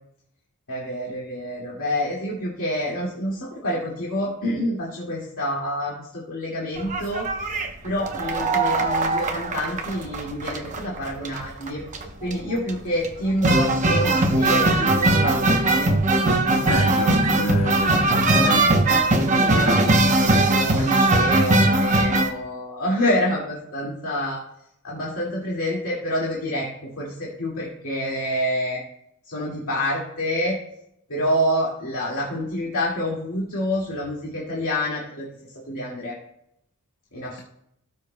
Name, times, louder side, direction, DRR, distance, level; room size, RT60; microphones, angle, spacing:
voice 1, 0.7-11.8 12.2-15.9 19.1-24.4 24.8-28.8 29.3-30.5 31.1-35.3 35.7-36.1 37.1-37.4, equal, 70° left, -5 dB, 2.1 m, -27 dB
sound 1, 6.8-22.3, right 2 dB, 35° right, 0.9 m, -20 dB
voice 2, 16.6-18.7, equal, 85° left, 2 dB, 0.9 m, -27 dB
17.5 x 6.8 x 2.2 m, 0.76 s
head